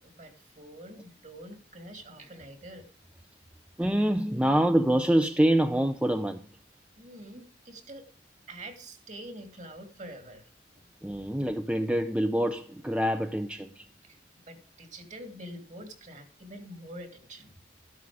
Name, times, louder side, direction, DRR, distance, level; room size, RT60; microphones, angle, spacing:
voice 1, 0.0-2.9 7.0-8.1 8.5-10.5 10.8-10.9 14.0-14.2 14.5-17.6, right 1 dB, 40° right, 2.6 m, -45 dB
voice 2, 3.8-6.5 11.0-13.9, right 1 dB, 5° right, 0.6 m, -25 dB
13.5 x 11.0 x 4.9 m
head